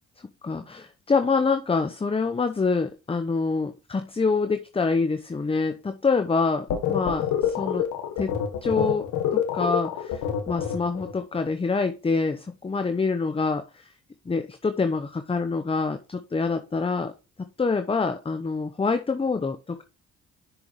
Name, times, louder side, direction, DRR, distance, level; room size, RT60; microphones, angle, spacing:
voice 1, 0.4-7.3 7.6-7.8 8.2-8.3 8.6-13.6 14.3-17.1 17.6-19.8, left 4 dB, 20° left, 8 dB, 0.8 m, -26 dB
sound 1, 6.7-11.1, left 9 dB, 90° left, 1.5 m, -26 dB
7.0 x 6.2 x 3.1 m, 0.30 s
cardioid pair, 90°, 30 cm